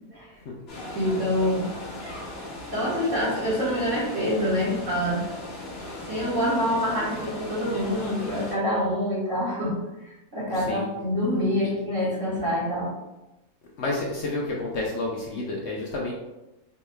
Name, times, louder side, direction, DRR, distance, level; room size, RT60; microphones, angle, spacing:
sound 1, 0.7-8.5, left 1 dB, 45° left, 1.2 m, -37 dB
voice 1, 0.9-1.7 2.7-5.2 6.1-9.7 10.3-12.9, equal, 55° right, -10 dB, 1.9 m, -26 dB
voice 2, 10.5-10.9 13.8-16.1, left 2 dB, 65° left, -2 dB, 0.7 m, -30 dB
4.7 x 3.0 x 2.2 m, 0.98 s
omnidirectional pair, 1.6 m